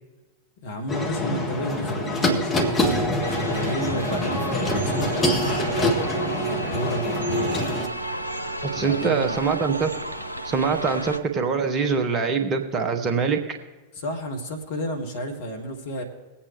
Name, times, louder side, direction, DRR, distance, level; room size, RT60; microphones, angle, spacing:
voice 1, 0.6-5.9 6.4-7.8 8.7-9.4 13.9-16.0, equal, 55° left, 4 dB, 2.0 m, -32 dB
sound 1, 0.9-7.9, left 1 dB, 20° left, 1.8 m, -25 dB
sound 2, 3.2-11.2, right 2 dB, 85° right, 0.8 m, -32 dB
voice 2, 8.7-9.9 10.4-13.6, right 5 dB, 25° right, 5 dB, 1.4 m, -24 dB
21.5 x 8.8 x 3.3 m, 1.2 s
figure-of-eight pair, 90°, 0 cm